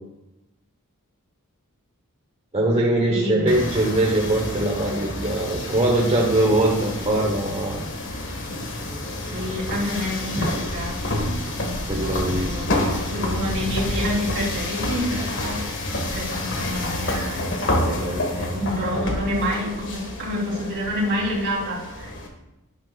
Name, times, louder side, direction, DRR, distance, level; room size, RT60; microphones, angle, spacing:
voice 1, 2.5-7.9 10.4-10.5 11.9-12.8 17.8-18.3, right 1 dB, 30° right, -2 dB, 1.0 m, -22 dB
voice 2, 3.1-3.5 9.2-15.7 16.1-22.1, equal, 55° right, -4 dB, 3.3 m, -28 dB
sound 1, 3.5-22.3, left 1 dB, 55° left, 1.6 m, -29 dB
11.5 x 10.5 x 2.4 m, 0.95 s
head